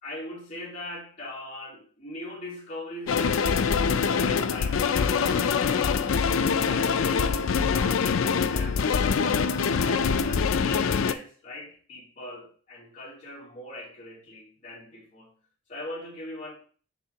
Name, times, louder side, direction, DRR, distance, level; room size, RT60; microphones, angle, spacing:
voice 1, 0.0-6.2 6.6-9.3 9.8-15.4 15.7-16.5, left 1 dB, 40° left, 2.8 m, -41 dB
sound 1, 3.1-11.1, left 6 dB, 85° left, 0.4 m, -24 dB
10.0 x 3.6 x 2.8 m
head